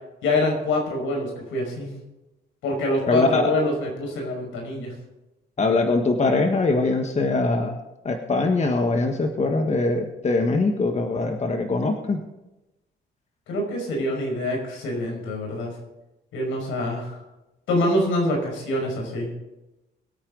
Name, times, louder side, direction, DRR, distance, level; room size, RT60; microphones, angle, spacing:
voice 1, 0.2-1.9 2.6-4.9 13.5-15.7 16.3-17.1 17.7-19.3, left 1 dB, 85° left, 1 dB, 5.5 m, -25 dB
voice 2, 3.1-3.4 5.6-7.8 8.0-12.2, left 3 dB, 35° left, 5 dB, 1.5 m, -22 dB
22.0 x 8.8 x 3.9 m, 0.97 s
cardioid pair, 90°, 20 cm